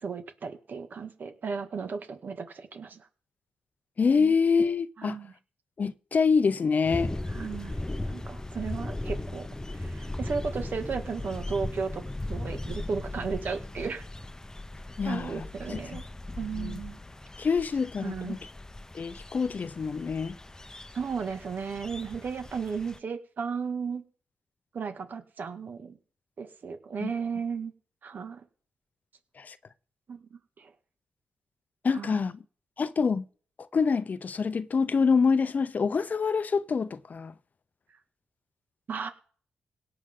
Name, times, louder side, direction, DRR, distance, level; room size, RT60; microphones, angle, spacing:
voice 1, 0.0-3.1 4.1-4.3 5.0-5.3 7.3-7.8 8.1-9.5 9.7-12.0 12.3-14.0 15.0-16.0 16.4-17.0 18.0-18.4 20.9-24.0 24.7-26.0 26.4-27.7 28.0-28.4 30.1-30.7 31.9-32.2 38.9-39.1, right 5 dB, 60° right, 2.1 m, -35 dB
voice 2, 4.0-5.2 5.8-7.1 15.0-15.4 15.7-15.8 16.6-16.8 17.4-18.4 18.9-20.4 27.0-27.1 29.4-29.6 31.8-32.4 32.8-33.2 33.7-37.3, left 5 dB, 50° left, 0.7 m, -26 dB
sound 1, 6.8-23.0, left 2 dB, 15° left, 0.8 m, -38 dB
17.5 x 7.7 x 3.8 m
supercardioid pair, 50°, 4 cm